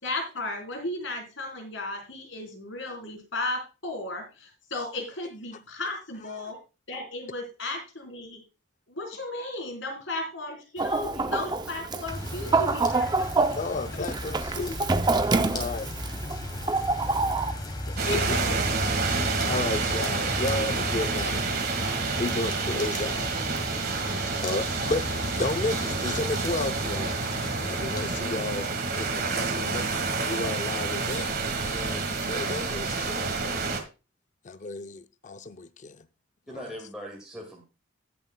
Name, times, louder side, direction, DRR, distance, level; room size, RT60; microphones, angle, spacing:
voice 1, 0.0-6.6 6.9-8.4 8.9-13.6 13.9-14.0 14.6-14.7 18.1-18.6, left 2 dB, 70° left, 3.9 m, -35 dB
Chicken rooster, 10.8-17.5, right 3 dB, 20° right, 0.5 m, -27 dB
voice 2, 11.0-12.1 15.2-15.8 36.5-37.6, equal, 5° right, 1.9 m, -41 dB
sound 1, 12.0-28.2, left 1 dB, 20° left, 2.6 m, -36 dB
voice 3, 13.5-14.8 15.5-15.9 19.4-21.4 22.2-23.3 24.4-25.0 25.4-27.2 27.6-30.0 30.2-31.3 31.7-33.8 34.4-36.1 36.5-36.8, left 2 dB, 40° left, 0.5 m, -33 dB
sound 2, 18.0-33.8, right 4 dB, 50° right, 1.7 m, -29 dB
19.0 x 7.1 x 2.2 m
head